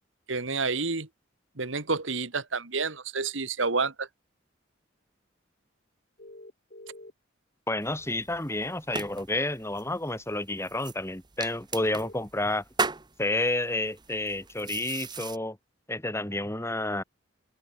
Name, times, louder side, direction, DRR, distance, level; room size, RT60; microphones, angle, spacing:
voice 1, 0.3-1.1 1.6-4.1, right 4 dB, 75° right, 2.0 m, -29 dB
sound 1, 6.2-7.1 8.3-8.4 11.8-12.1, left 1 dB, 50° left, 4.0 m, -46 dB
voice 2, 7.7-12.6 13.2-15.6 15.9-17.0, left 2 dB, 15° left, 2.7 m, -30 dB
sound 2, 7.8-15.4, right 4 dB, 20° right, 1.4 m, -38 dB
head